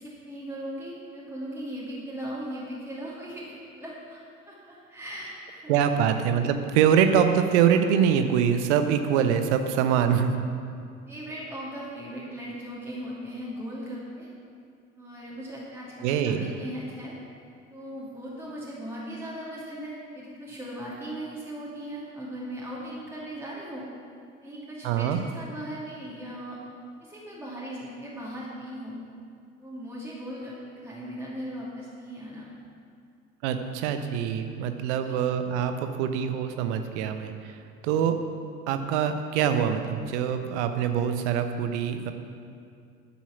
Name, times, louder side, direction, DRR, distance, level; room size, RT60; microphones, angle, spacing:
voice 1, 0.0-5.6 11.1-14.3 15.0-17.2 17.7-23.9 24.4-26.6 27.0-29.0 29.6-30.5 30.8-32.5 35.0-35.2, equal, 5° right, -7 dB, 2.5 m, -38 dB
voice 2, 5.7-10.4 16.0-16.5 24.8-25.2 33.4-37.6 37.8-38.2 38.7-42.1, right 8 dB, 55° right, 7 dB, 1.0 m, -24 dB
11.5 x 7.3 x 5.9 m, 2.4 s
figure-of-eight pair, 65°, 40 cm